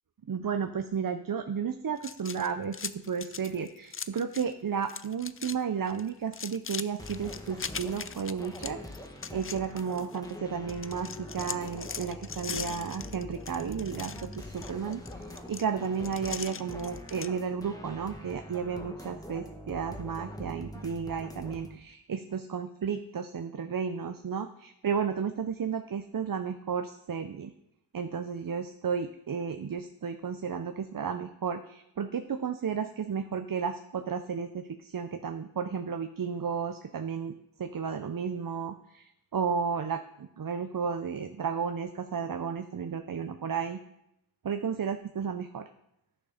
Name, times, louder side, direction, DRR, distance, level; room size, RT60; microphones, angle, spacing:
voice 1, 0.3-8.8 9.3-27.5 27.9-37.3 37.6-43.8 44.4-45.7, right 6 dB, 50° right, 8 dB, 0.6 m, -33 dB
sound 1, 2.0-4.5 4.8-5.6 5.9-10.3 10.7-17.3, left 6 dB, 30° left, 0.4 m, -40 dB
sound 2, 7.0-21.8, equal, 10° left, 1.3 m, -44 dB
11.5 x 6.6 x 5.0 m, 0.82 s
wide cardioid pair, 65°, 44 cm